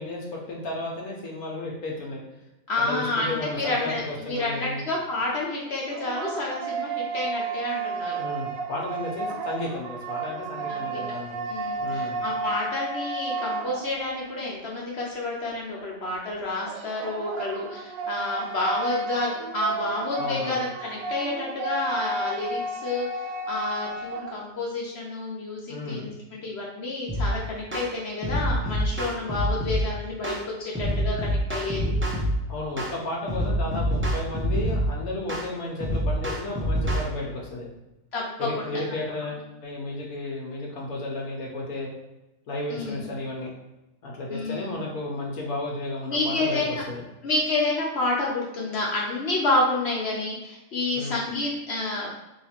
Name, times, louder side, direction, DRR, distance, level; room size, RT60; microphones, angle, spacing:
voice 1, 0.0-2.2 2.8-4.8 8.0-11.5 11.8-12.2 20.2-20.6 25.7-26.1 32.5-37.6 38.4-41.9 42.5-43.5 44.0-47.0 50.9-51.2, left 2 dB, 85° left, -2 dB, 1.3 m, -33 dB
voice 2, 2.7-8.2 10.7-11.0 11.5-32.0 33.7-33.8 38.1-38.8 42.7-43.1 44.3-44.8 46.1-46.8 47.2-52.1, left 2 dB, 55° left, -3 dB, 0.9 m, -29 dB
sound 1, 5.6-14.3 16.7-24.4, right 3 dB, 75° right, 1.0 m, -32 dB
sound 2, 27.1-27.3 27.7-27.9 28.2-29.8 30.2-30.4 30.8-32.4 32.8-33.0 33.3-34.9 35.3-35.5 35.8-37.1, equal, 15° right, 0.5 m, -26 dB
3.2 x 2.9 x 4.2 m, 0.97 s
omnidirectional pair, 1.5 m